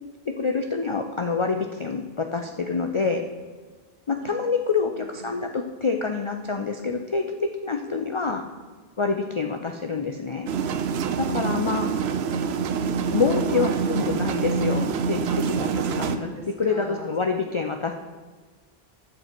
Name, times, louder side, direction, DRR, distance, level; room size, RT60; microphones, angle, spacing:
voice 1, 0.3-3.2 4.1-8.4 9.0-10.5 11.2-11.9 13.1-15.2 15.5-15.7 16.0-16.3 16.6-17.9, left 4 dB, 40° left, 4 dB, 0.4 m, -26 dB
voice 2, 4.8-5.3 11.0-11.2 11.6-12.9 13.3-13.9 15.3-15.5 15.8-17.1, right 1 dB, 50° right, -3 dB, 2.4 m, -41 dB
sound 1, 10.5-16.2, right 6 dB, 80° right, 0.9 m, -26 dB
10.5 x 7.7 x 4.4 m, 1.4 s
omnidirectional pair, 1.1 m